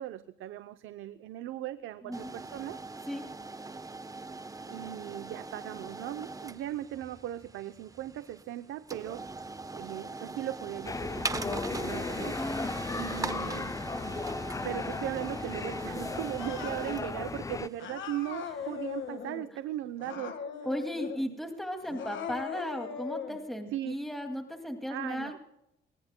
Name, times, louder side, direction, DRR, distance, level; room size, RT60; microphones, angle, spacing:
voice 1, 0.0-2.8 4.7-9.3 9.7-12.4 12.9-14.2 14.6-20.4 21.3-21.4 23.7-24.0 24.9-25.4, right 13 dB, 85° right, 11 dB, 0.7 m, -38 dB
sound 1, 2.1-19.0, right 3 dB, 15° right, 0.9 m, -41 dB
sound 2, 10.9-17.7, left 4 dB, 15° left, 0.4 m, -36 dB
voice 2, 12.4-12.7 20.7-25.4, equal, ahead, 4 dB, 2.3 m, -35 dB
Cat, 16.4-17.1 17.8-19.5 20.0-21.3 21.8-23.4, left 7 dB, 70° left, 1.7 m, -39 dB
24.0 x 19.5 x 2.2 m, 0.83 s
cardioid pair, 90°, 20 cm